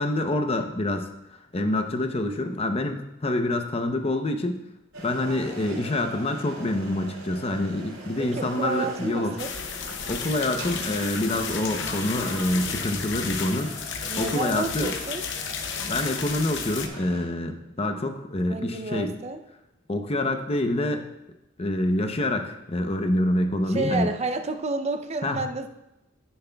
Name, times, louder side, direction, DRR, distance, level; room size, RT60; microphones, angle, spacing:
voice 1, 0.0-4.6 5.0-9.3 10.0-14.9 15.8-19.1 19.9-21.1 21.6-24.1 25.2-25.4, left 1 dB, 30° left, 6 dB, 0.7 m, -26 dB
sound 1, 4.9-17.2, right 1 dB, 85° right, 3.1 m, -41 dB
voice 2, 8.2-9.5 14.1-15.2 18.5-19.4 23.7-25.7, right 3 dB, 30° right, 7 dB, 0.5 m, -30 dB
sound 2, 9.4-16.9, left 6 dB, 60° left, 0.8 m, -33 dB
10.5 x 9.8 x 2.3 m, 0.91 s
head